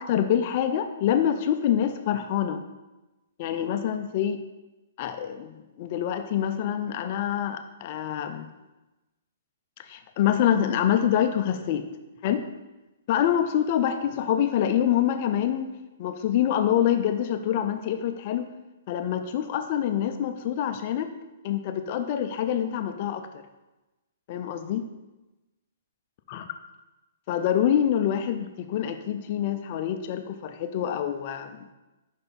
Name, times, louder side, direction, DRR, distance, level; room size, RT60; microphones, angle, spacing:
voice 1, 0.0-2.6 3.4-4.4 5.0-8.5 9.8-11.9 12.2-12.4 13.1-15.7 16.0-18.5 18.9-21.1 21.4-23.4 24.3-24.8 26.3-26.4 27.3-31.6, left 10 dB, 40° left, 8 dB, 0.5 m, -26 dB
5.6 x 4.1 x 5.2 m, 1.0 s
hypercardioid pair, 160°, 0 cm